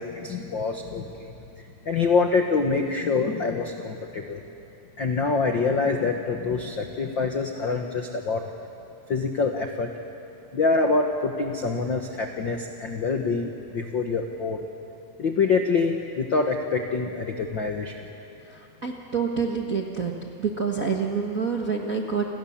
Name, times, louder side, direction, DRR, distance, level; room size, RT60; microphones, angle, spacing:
voice 1, 0.0-1.3 1.8-4.4 5.0-8.5 9.1-9.9 10.5-14.6 15.2-18.0, left 4 dB, 65° left, 3 dB, 1.2 m, -25 dB
voice 2, 18.8-20.1 20.4-22.3, right 5 dB, 50° right, 0 dB, 1.0 m, -27 dB
30.0 x 27.0 x 7.3 m, 2.7 s
omnidirectional pair, 4.2 m